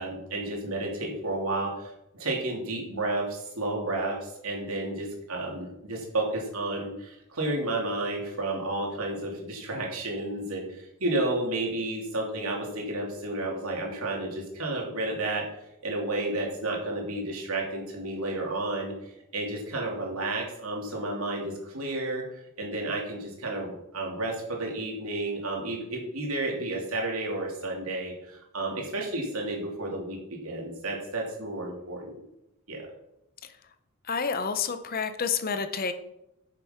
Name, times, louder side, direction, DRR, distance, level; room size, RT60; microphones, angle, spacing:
voice 1, 0.0-15.5 15.8-22.2 22.6-32.1 32.7-32.9, right 2 dB, 75° right, -1 dB, 3.0 m, -31 dB
voice 2, 34.0-35.9, left 6 dB, 40° left, 10 dB, 0.8 m, -29 dB
9.1 x 6.8 x 5.8 m, 0.85 s
head